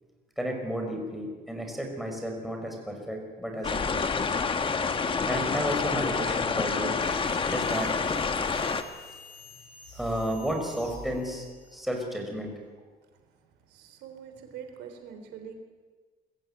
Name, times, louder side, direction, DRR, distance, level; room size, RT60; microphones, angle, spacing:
voice 1, 0.4-4.1 5.2-7.0 7.5-7.9 9.9-11.4 11.7-12.5, equal, ahead, 2 dB, 5.5 m, -32 dB
sound 1, 3.6-8.8, left 5 dB, 30° left, 1.6 m, -28 dB
sound 2, 7.0-11.9, left 2 dB, 85° left, 7.9 m, -47 dB
voice 2, 13.7-15.5, right 8 dB, 85° right, 6 dB, 3.7 m, -44 dB
22.5 x 15.0 x 9.0 m, 1.4 s
cardioid pair, 110°, 17 cm